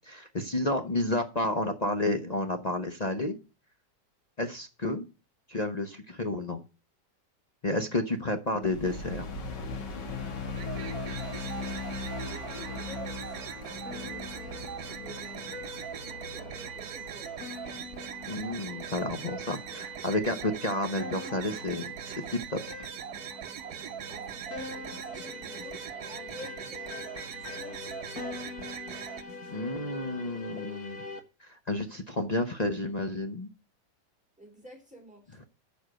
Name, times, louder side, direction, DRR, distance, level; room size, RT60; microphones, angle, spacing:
voice 1, 0.1-3.4 4.4-5.1 5.5-6.6 7.6-9.3 18.3-22.9 29.5-31.0 31.5-33.5, left 2 dB, 35° left, 6 dB, 0.6 m, -31 dB
sound 1, 8.6-19.1, left 4 dB, 75° left, 2.2 m, -39 dB
sound 2, 10.5-29.2, right 9 dB, 65° right, 1.2 m, -41 dB
voice 2, 12.1-17.4 24.1-28.4 34.4-35.5, equal, 5° right, 2 dB, 3.2 m, -50 dB
sound 3, 13.9-31.2, left 4 dB, 55° left, 1.9 m, -44 dB
9.8 x 5.4 x 7.7 m, 0.32 s
omnidirectional pair, 1.9 m